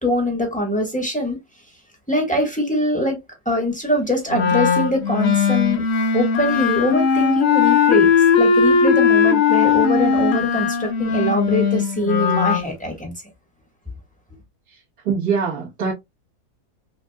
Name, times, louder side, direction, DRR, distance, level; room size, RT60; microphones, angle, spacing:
voice 1, 0.0-1.4 2.1-3.2 3.4-5.8 6.1-8.1 8.4-13.1, left 1 dB, 5° left, 1.3 m, -23 dB
Wind instrument woodwind instrument, 4.3-12.6, left 6 dB, 50° left, 0.9 m, -18 dB
voice 2, 15.1-15.9, right 6 dB, 80° right, 2.0 m, -22 dB
6.0 x 2.5 x 2.2 m
omnidirectional pair, 1.7 m